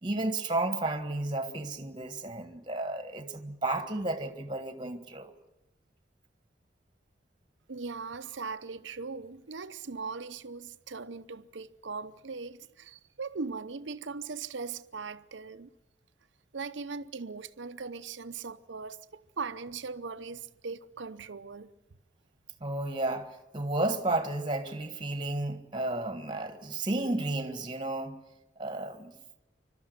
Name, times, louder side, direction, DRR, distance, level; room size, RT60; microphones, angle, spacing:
voice 1, 0.0-5.3 22.6-28.2 28.6-29.1, right 2 dB, 25° right, 1.6 m, -32 dB
voice 2, 7.7-15.7 16.5-21.7, right 4 dB, 75° right, 0.7 m, -39 dB
27.5 x 12.5 x 9.6 m
head